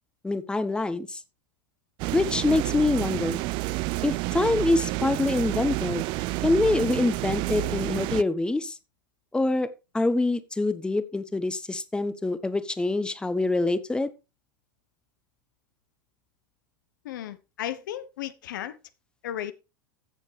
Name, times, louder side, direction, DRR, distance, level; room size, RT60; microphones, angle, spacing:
voice 1, 0.2-1.2 2.1-3.4 4.0-6.1 6.4-8.8 9.3-14.1, left 2 dB, 10° left, 1.0 m, -25 dB
sound 1, 2.0-8.2, right 21 dB, 45° right, 0.4 m, -29 dB
voice 2, 17.0-18.7 19.2-19.5, left 11 dB, 65° left, 0.9 m, -34 dB
15.0 x 7.3 x 3.3 m
figure-of-eight pair, 90°, 11 cm